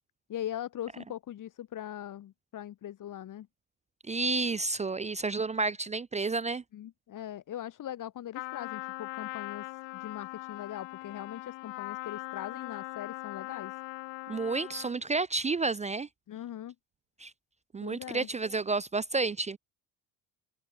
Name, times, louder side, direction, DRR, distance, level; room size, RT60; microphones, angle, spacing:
voice 1, 0.3-3.5 6.7-13.8 16.3-16.7 17.8-18.3, left 11 dB, 45° left, 2.6 m, -41 dB
voice 2, 4.1-6.6 14.3-16.1 17.2-17.3 17.7-19.6, right 3 dB, 15° right, 0.5 m, -30 dB
Trumpet, 8.3-15.0, left 23 dB, 90° left, 1.1 m, -41 dB
cardioid pair, 155°, 44 cm